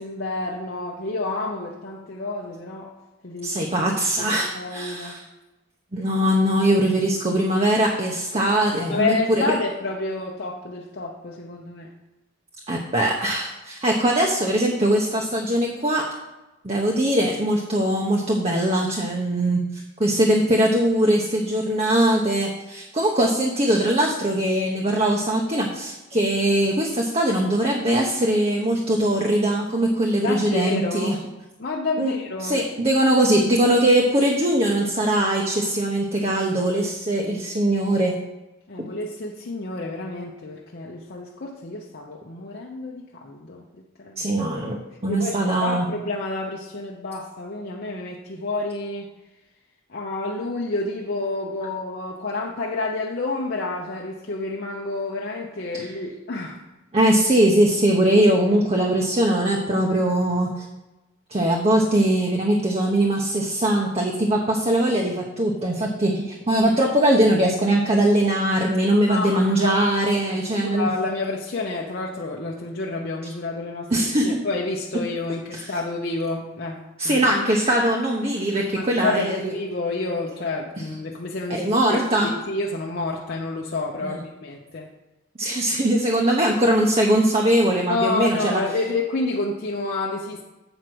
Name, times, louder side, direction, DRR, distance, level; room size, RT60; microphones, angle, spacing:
voice 1, 0.0-2.9 3.2-3.7 4.2-5.2 8.9-11.9 30.2-31.2 31.6-32.6 38.7-43.6 44.0-44.3 45.1-49.1 49.9-56.6 69.1-69.8 70.3-77.2 78.8-84.9 87.9-90.4, left 2 dB, 50° left, -2 dB, 0.7 m, -29 dB
voice 2, 3.4-5.2 5.9-9.6 12.7-16.0 16.6-31.2 32.0-32.1 32.4-38.1 44.2-45.9 55.7-55.9 56.9-60.7 61.3-70.9 73.9-74.4 75.5-75.7 77.0-79.5 81.5-82.3 84.0-84.2 85.4-88.6, right 1 dB, 30° right, 0 dB, 0.9 m, -21 dB
7.9 x 5.0 x 6.0 m, 1.0 s
head